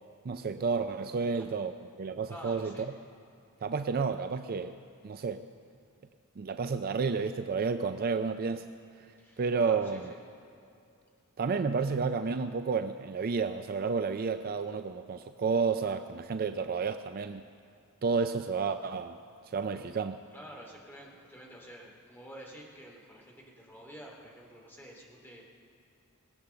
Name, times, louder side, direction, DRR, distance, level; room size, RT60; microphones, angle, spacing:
voice 1, 0.2-2.7 3.6-4.8 5.0-5.4 6.4-8.6 9.4-10.1 11.4-17.4 18.0-19.2 19.5-20.2, right 5 dB, 40° right, 9 dB, 0.4 m, -31 dB
voice 2, 2.3-2.9 9.2-10.2 20.3-25.4, equal, 10° left, -2 dB, 2.5 m, -49 dB
20.5 x 8.3 x 6.9 m, 2.5 s
head